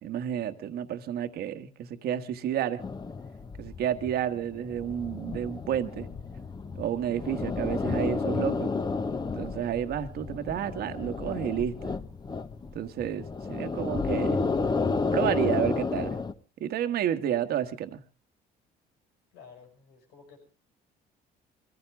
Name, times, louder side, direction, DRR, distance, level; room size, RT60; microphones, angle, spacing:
voice 1, 0.0-2.8 3.6-6.1 6.8-8.7 9.3-11.9 12.7-14.4 15.1-16.2 16.6-18.0, right 10 dB, 65° right, 9 dB, 1.5 m, -30 dB
sound 1, 2.8-16.3, left 4 dB, 25° left, 1.2 m, -31 dB
voice 2, 12.7-13.1 19.3-20.5, left 5 dB, 85° left, 5 dB, 5.6 m, -54 dB
23.5 x 15.0 x 3.5 m, 0.33 s
cardioid pair, 110°, 17 cm